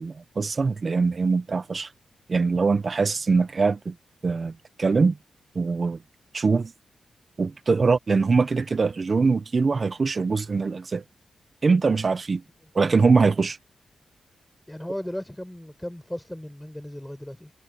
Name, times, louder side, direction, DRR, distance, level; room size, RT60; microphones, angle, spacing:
voice 1, 0.0-1.9 2.3-3.9 4.2-4.5 4.8-5.1 5.5-6.0 6.3-6.7 7.4-11.0 11.6-12.4 12.7-13.6, right 4 dB, 40° right, 0.9 m, -22 dB
voice 2, 14.7-17.5, left 1 dB, 5° left, 5.1 m, -36 dB
cardioid pair, 95°, 0 cm